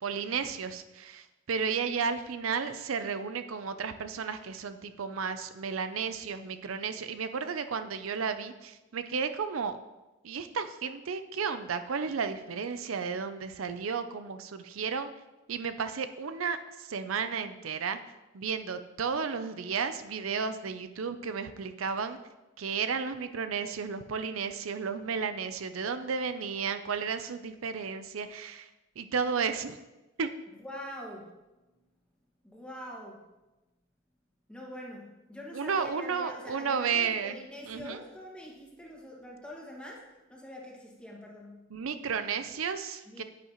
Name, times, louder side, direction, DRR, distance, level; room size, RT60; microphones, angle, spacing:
voice 1, 0.0-9.8 10.2-15.1 15.5-18.0 18.3-22.2 22.6-28.7 29.0-29.8 30.2-30.3 35.5-37.4 37.7-38.0 41.7-43.2, right 6 dB, 80° right, 10 dB, 0.5 m, -33 dB
voice 2, 30.6-31.7 32.4-33.2 34.5-41.6 43.1-43.2, left 1 dB, 5° left, -3 dB, 1.8 m, -44 dB
10.5 x 9.2 x 3.0 m, 1.0 s
head